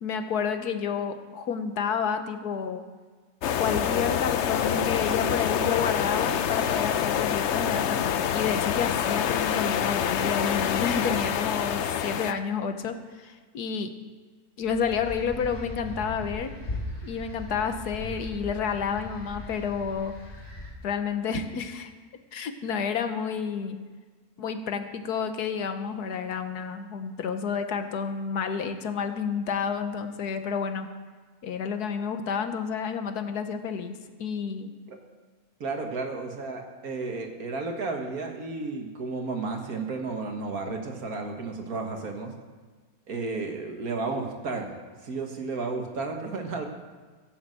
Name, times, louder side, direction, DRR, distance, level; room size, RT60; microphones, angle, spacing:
voice 1, 0.0-2.8 3.6-13.9 14.6-16.5 17.0-20.1 20.8-21.9 22.3-23.8 24.4-30.9 31.4-33.9 34.2-34.7, left 6 dB, 80° left, 8 dB, 1.6 m, -30 dB
sound 1, 3.4-12.3, left 9 dB, 60° left, 0.8 m, -26 dB
sound 2, 14.6-20.7, left 2 dB, 40° left, 3.5 m, -39 dB
voice 2, 35.6-42.3 43.1-44.7 45.0-46.7, right 3 dB, 65° right, 3 dB, 2.1 m, -32 dB
16.0 x 7.2 x 7.7 m, 1.4 s
omnidirectional pair, 1.7 m